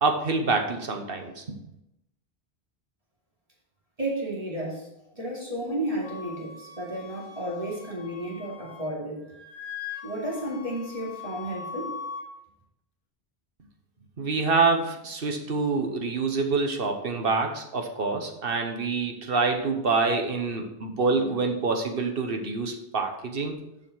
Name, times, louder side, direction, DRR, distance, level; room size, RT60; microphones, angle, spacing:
voice 1, 0.0-1.6 14.2-23.6, right 4 dB, 60° right, 4 dB, 1.3 m, -26 dB
voice 2, 4.0-4.9 5.1-9.3 10.0-12.0, right 1 dB, 35° right, -4 dB, 2.7 m, -32 dB
Wind instrument woodwind instrument, 6.0-8.9 9.2-12.3, left 6 dB, 55° left, 1.1 m, -41 dB
7.1 x 5.7 x 6.1 m, 0.85 s
omnidirectional pair, 1.1 m